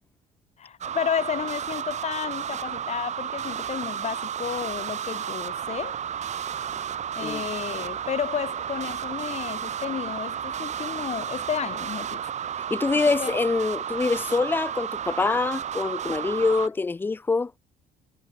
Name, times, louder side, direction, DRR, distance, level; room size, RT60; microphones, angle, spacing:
voice 1, 0.6-6.0 7.1-12.3 13.2-13.4, left 8 dB, 40° left, 1.5 m, -32 dB
sound 1, 0.8-16.7, right 9 dB, 45° right, 1.1 m, -32 dB
sound 2, 5.9-11.9, right 1 dB, 5° right, 5.4 m, -56 dB
voice 2, 12.7-17.5, left 3 dB, 10° left, 0.3 m, -25 dB
cardioid pair, 110°, 17 cm